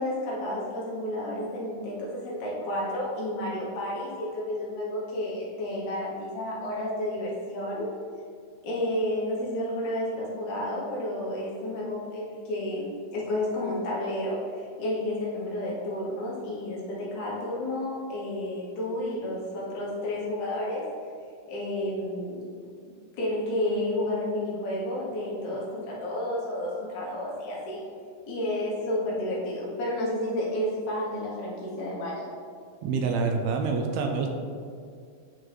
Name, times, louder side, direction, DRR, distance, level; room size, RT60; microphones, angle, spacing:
voice 1, 0.0-7.9 8.6-20.9 21.5-22.4 23.2-27.8 28.3-32.3, left 1 dB, 85° left, -5 dB, 2.5 m, -31 dB
voice 2, 32.8-34.3, right 4 dB, 80° right, 3 dB, 1.7 m, -26 dB
9.2 x 3.9 x 3.2 m, 2.2 s
omnidirectional pair, 3.3 m